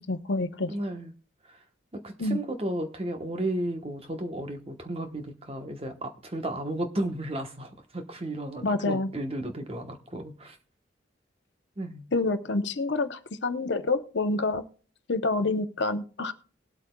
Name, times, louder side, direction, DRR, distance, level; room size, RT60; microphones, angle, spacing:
voice 1, 0.1-0.7 2.2-2.4 8.6-9.1 12.1-14.7 15.1-16.3, left 3 dB, 70° left, 0.9 m, -27 dB
voice 2, 0.7-1.1 1.5-1.6 1.9-10.6 11.8-12.1, right 1 dB, 30° right, 1.1 m, -34 dB
20.0 x 8.3 x 2.3 m
head